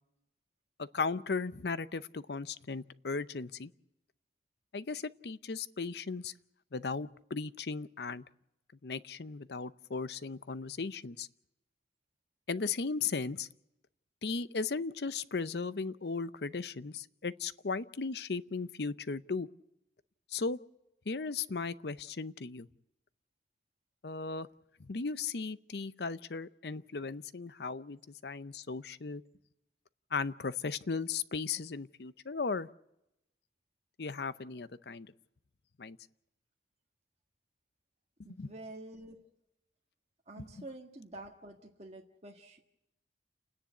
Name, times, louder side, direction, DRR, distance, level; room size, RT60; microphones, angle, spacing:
voice 1, 0.8-3.7 4.7-6.3 6.7-8.2 8.8-11.3 12.5-13.5 14.2-19.5 20.3-20.6 21.1-22.7 24.0-24.5 24.8-29.2 30.1-32.7 34.0-35.1 35.8-36.0 38.4-38.5 40.4-40.6, left 4 dB, 60° left, 15 dB, 0.7 m, -36 dB
voice 2, 38.2-39.2 40.3-42.6, right 2 dB, 35° right, 1 dB, 1.7 m, -48 dB
29.0 x 10.0 x 9.4 m, 0.85 s
head